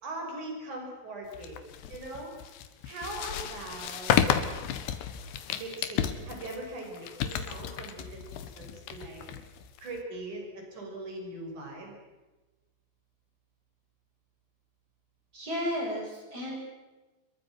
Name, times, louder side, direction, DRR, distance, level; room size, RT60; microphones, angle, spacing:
voice 1, 0.0-1.6 1.9-2.3 2.9-4.1 5.5-9.3 9.8-12.0, right 2 dB, 40° right, 1 dB, 7.0 m, -40 dB
sound 1, 1.3-10.0, left 9 dB, 65° left, 3.0 m, -32 dB
voice 2, 15.3-16.6, equal, 20° right, -1 dB, 7.4 m, -33 dB
27.0 x 22.5 x 6.1 m, 1.1 s
omnidirectional pair, 5.6 m